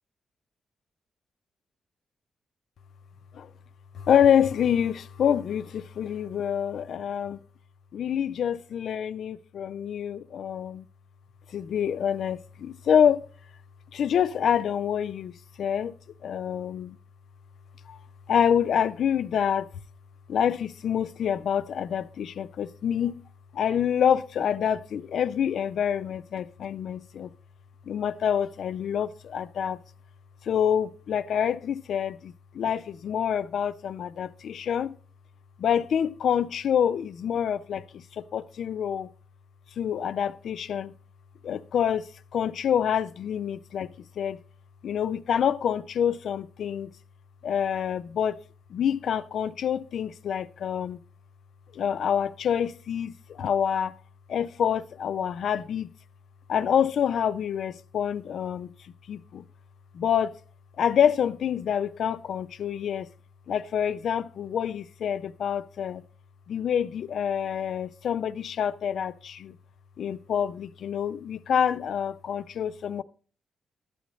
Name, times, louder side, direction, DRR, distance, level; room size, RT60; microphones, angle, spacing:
voice 1, 3.9-7.4 7.9-10.9 11.5-13.2 13.9-15.3 15.6-15.9 16.2-17.0 17.9-18.0 18.3-19.7 20.3-23.2 23.5-27.3 27.9-29.8 30.4-34.9 35.6-39.1 39.8-40.9 41.4-44.4 44.8-46.9 47.4-48.4 48.7-51.0 51.7-54.0 54.3-55.9 56.5-58.7 59.1-59.4 59.9-60.4 60.8-63.1 63.5-66.0 66.5-69.6 70.0-73.0, left 8 dB, 75° left, 0.4 m, -27 dB
12.0 x 8.4 x 3.1 m
cardioid pair, 100°, 0 cm